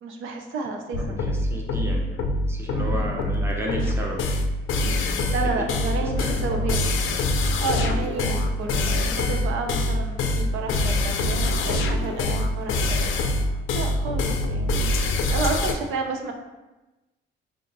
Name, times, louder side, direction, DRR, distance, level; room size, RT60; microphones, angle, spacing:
voice 1, 0.0-1.2 2.7-3.2 5.3-6.8 7.6-13.1 13.7-15.0 15.3-16.3, right 4 dB, 85° right, 3 dB, 0.5 m, -31 dB
sound 1, 0.9-15.7, left 2 dB, 85° left, 0.4 m, -24 dB
voice 2, 1.0-4.2 4.8-5.6 6.0-6.7, equal, 10° right, -1 dB, 0.7 m, -34 dB
5.6 x 2.4 x 2.6 m, 1.1 s
cardioid pair, 90°, 20 cm